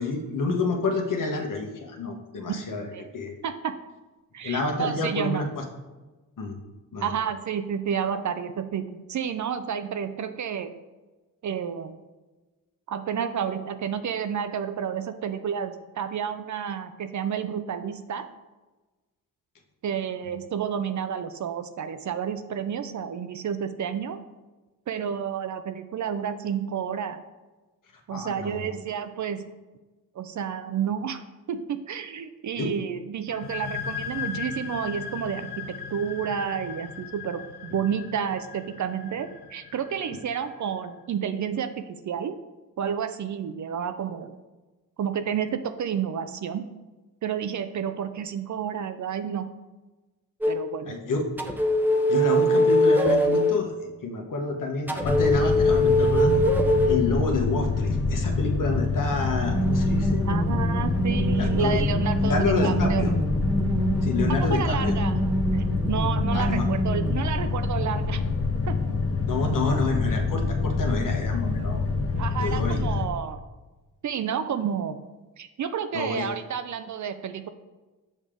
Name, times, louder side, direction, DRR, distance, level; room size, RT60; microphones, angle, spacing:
voice 1, 0.0-2.9 3.1-3.4 4.4-5.6 6.4-6.5 6.9-7.1 28.1-28.7 32.6-32.7 50.9-51.3 52.1-53.7 54.0-56.4 56.8-60.3 61.3-61.8 62.2-63.1 64.0-64.9 66.3-66.6 69.3-71.8 72.4-72.8 75.9-76.3, left 3 dB, 55° left, 3 dB, 1.2 m, -28 dB
voice 2, 3.4-3.7 4.3-5.4 7.0-10.7 11.4-12.0 12.9-18.3 19.8-24.2 24.9-27.2 28.1-29.4 30.2-31.2 31.5-42.4 42.8-44.4 45.0-46.6 47.2-49.5 50.5-50.9 60.3-63.0 64.5-65.1 65.5-68.2 68.7-68.8 72.2-73.5 74.0-75.1 75.4-77.5, right 8 dB, 50° right, 10 dB, 0.5 m, -30 dB
sound 1, 33.3-40.7, left 7 dB, 75° left, 0.7 m, -38 dB
sound 2, 50.4-50.6 51.4-53.6 54.9-57.0 59.4-67.2, equal, 5° right, 0.7 m, -24 dB
sound 3, 55.0-73.1, left 4 dB, 35° left, 0.9 m, -26 dB
6.3 x 5.1 x 3.7 m, 1.2 s
cardioid pair, 65°, 39 cm